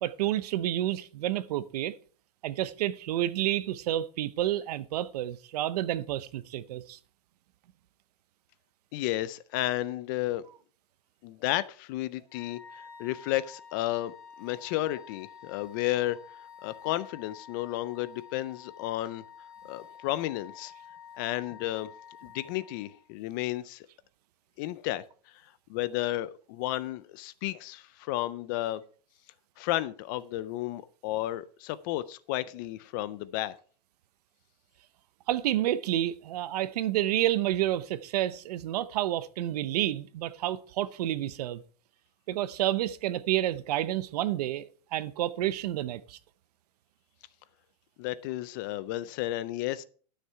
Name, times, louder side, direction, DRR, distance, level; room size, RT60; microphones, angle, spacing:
voice 1, 0.0-1.9 2.4-7.0 35.3-41.6 42.3-46.2, right 13 dB, 70° right, 0.8 m, -29 dB
voice 2, 8.9-10.4 11.2-16.2 16.6-19.2 19.6-20.7 21.2-21.9 22.2-23.9 24.6-25.0 25.4-28.8 29.6-33.5 48.0-49.8, left 15 dB, 30° left, 0.4 m, -32 dB
Wind instrument woodwind instrument, 12.3-23.1, left 7 dB, 10° left, 4.6 m, -49 dB
12.0 x 6.6 x 4.5 m
supercardioid pair, 175°, 21 cm